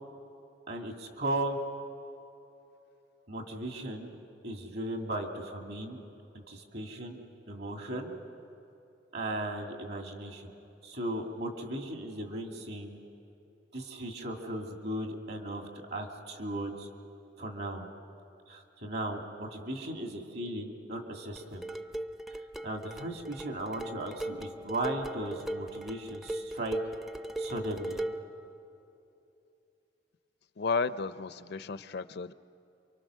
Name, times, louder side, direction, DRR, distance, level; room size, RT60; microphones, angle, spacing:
voice 1, 0.7-1.6 3.3-4.2 4.4-6.0 6.3-7.2 7.5-8.2 9.1-10.5 10.8-13.0 13.7-16.9 17.4-17.9 18.5-21.7 22.3-26.8 27.4-28.0, right 1 dB, 65° right, 3 dB, 2.5 m, -37 dB
sound 1, 21.4-28.3, right 1 dB, ahead, 0.5 m, -38 dB
voice 2, 30.6-32.3, left 4 dB, 65° left, 14 dB, 0.6 m, -33 dB
28.0 x 24.0 x 6.4 m, 2.8 s
head